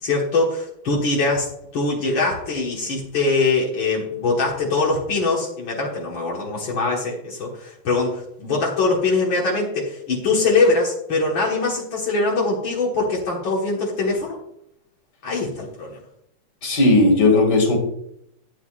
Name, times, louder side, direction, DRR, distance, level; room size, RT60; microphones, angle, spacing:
voice 1, 0.0-14.4 15.2-15.9, left 3 dB, 75° left, -4 dB, 2.4 m, -22 dB
voice 2, 16.6-17.8, left 2 dB, 55° left, 2 dB, 3.0 m, -16 dB
13.0 x 9.3 x 2.5 m, 0.75 s
omnidirectional pair, 2.1 m